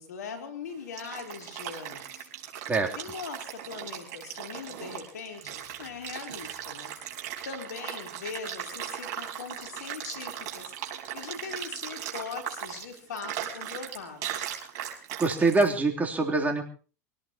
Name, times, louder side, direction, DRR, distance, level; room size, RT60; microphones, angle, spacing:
voice 1, 0.0-2.6 3.0-7.0 7.4-14.4, left 5 dB, 85° left, 4 dB, 4.1 m, -41 dB
sound 1, 0.7-15.7, right 10 dB, 55° right, 4.5 m, -38 dB
voice 2, 15.2-16.6, right 3 dB, 20° right, 1 dB, 3.5 m, -24 dB
24.0 x 17.5 x 3.1 m, 0.37 s
hypercardioid pair, 100°, 9 cm